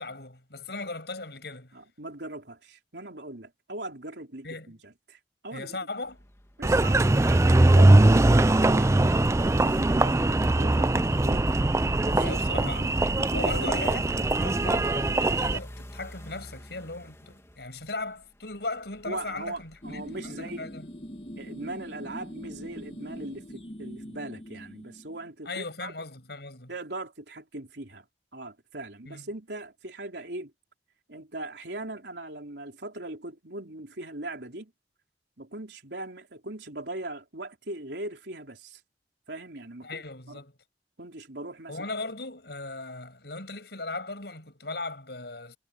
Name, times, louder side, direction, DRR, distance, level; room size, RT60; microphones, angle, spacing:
voice 1, 0.0-1.8 4.4-4.7 5.5-6.2 10.0-10.2 12.2-12.9 13.3-20.9 25.5-26.7 29.1-29.3 39.8-40.5 41.7-45.6, left 3 dB, 65° left, 7.0 m, -38 dB
voice 2, 1.7-5.9 6.6-11.5 11.9-12.7 13.1-14.0 19.0-20.7 21.4-25.9 26.7-28.1 28.3-30.5 31.1-34.7 35.4-38.8 39.3-40.4 41.0-41.8, right 2 dB, 75° right, 3.9 m, -40 dB
sound 1, 6.0-20.3, equal, 15° left, 2.5 m, -49 dB
Engine, 6.6-15.6, right 2 dB, 15° right, 0.4 m, -21 dB
sound 2, 19.8-25.3, equal, 35° left, 1.6 m, -42 dB
head